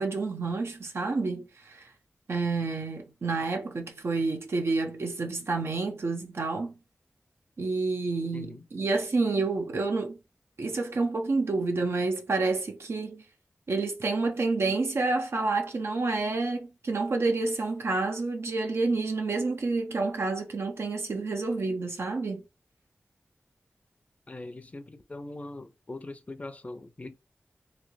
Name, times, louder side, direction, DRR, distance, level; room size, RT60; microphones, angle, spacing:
voice 1, 0.0-1.9 2.3-6.7 7.6-10.2 10.6-13.2 13.7-22.4, right 3 dB, 75° right, 0.7 m, -29 dB
voice 2, 8.3-8.6 24.3-27.2, left 2 dB, 35° left, 0.5 m, -41 dB
3.1 x 2.8 x 2.6 m
wide cardioid pair, 75°, 4 cm